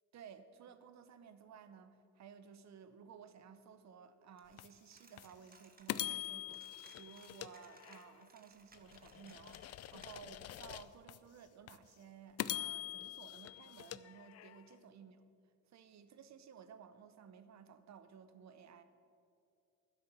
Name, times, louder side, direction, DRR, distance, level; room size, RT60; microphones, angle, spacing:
voice 1, 0.1-15.2 15.7-18.8, right 7 dB, 65° right, 11 dB, 1.0 m, -56 dB
Coin (dropping), 4.4-10.6, right 4 dB, 30° right, 1.3 m, -65 dB
sound 1, 4.6-4.7 5.2-5.3 5.9-8.2 8.7-11.2 11.7-11.8 12.4-14.7, left 13 dB, 55° left, 0.5 m, -44 dB
11.0 x 10.0 x 6.9 m, 2.5 s
cardioid pair, 90°, 30 cm